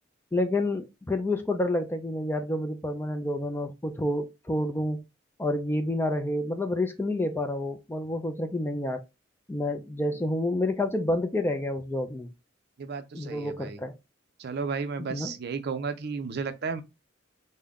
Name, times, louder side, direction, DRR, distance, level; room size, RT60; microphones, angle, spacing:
voice 1, 0.3-5.0 5.4-9.0 9.5-12.3 13.1-14.0 15.1-15.3, left 1 dB, 10° left, 0.4 m, -29 dB
voice 2, 12.8-13.8 14.4-16.8, right 5 dB, 55° right, 0.5 m, -33 dB
3.6 x 2.1 x 3.5 m
head